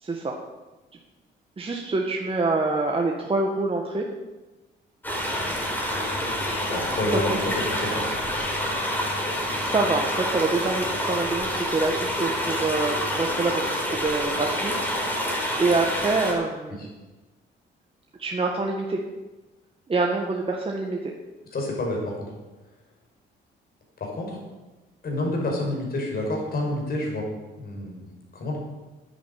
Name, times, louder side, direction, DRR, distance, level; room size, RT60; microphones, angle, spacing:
voice 1, 0.0-0.4 1.6-4.1 7.3-7.5 9.6-14.7 15.6-16.9 18.2-19.0 19.9-21.1, right 3 dB, 30° right, 0 dB, 1.7 m, -26 dB
sound 1, 5.0-16.3, equal, 10° left, 4.9 m, -27 dB
voice 2, 6.7-7.4 7.7-8.1 16.8-16.9 21.5-22.3 24.0-24.4 25.0-27.3 27.6-28.6, left 1 dB, 50° left, -1 dB, 5.9 m, -29 dB
10.5 x 10.0 x 8.9 m, 1.2 s
cardioid pair, 90°, 20 cm